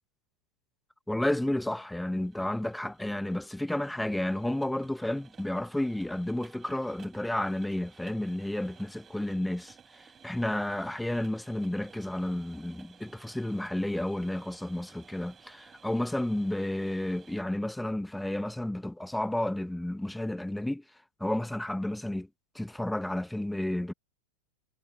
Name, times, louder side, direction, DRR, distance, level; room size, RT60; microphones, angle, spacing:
voice 1, 1.1-20.8 21.2-22.3 22.5-23.9, left 1 dB, 5° left, 1.3 m, -31 dB
sound 1, 2.2-17.4, right 7 dB, 20° right, 5.8 m, -57 dB
figure-of-eight pair, 90°, 0 cm